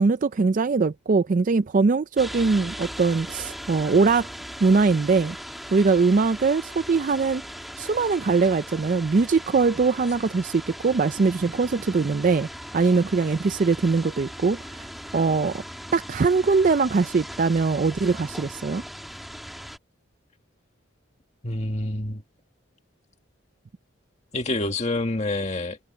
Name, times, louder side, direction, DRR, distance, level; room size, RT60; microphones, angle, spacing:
voice 1, 0.0-4.3 4.6-5.4 5.7-7.4 7.8-12.5 12.7-14.9 15.1-15.6 15.9-18.8, right 4 dB, 40° right, 0.4 m, -22 dB
sound 1, 2.2-19.8, equal, ahead, 2.0 m, -39 dB
voice 2, 21.4-22.2 24.3-25.8, left 2 dB, 35° left, 1.7 m, -27 dB
head